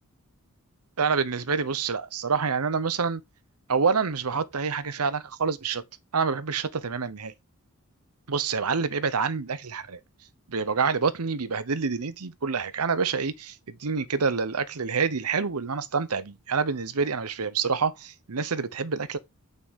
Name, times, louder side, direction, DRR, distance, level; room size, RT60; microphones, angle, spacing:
voice 1, 1.0-3.2 3.7-5.8 6.1-7.3 8.3-10.0 10.5-19.2, right 5 dB, 90° right, 0.9 m, -27 dB
8.8 x 5.2 x 3.7 m
head